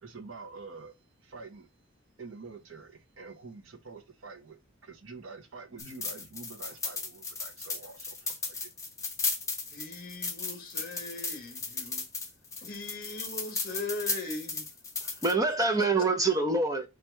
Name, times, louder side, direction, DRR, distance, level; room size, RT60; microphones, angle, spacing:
voice 1, 0.0-1.0 1.2-1.7 2.2-8.7, right 4 dB, 75° right, 1.0 m, -47 dB
sound 1, 5.8-15.3, left 4 dB, 15° left, 0.9 m, -35 dB
voice 2, 9.7-12.0 12.6-14.6, left 2 dB, 45° left, 1.3 m, -39 dB
voice 3, 15.0-16.9, right 3 dB, 15° right, 0.9 m, -26 dB
4.5 x 2.5 x 4.5 m
head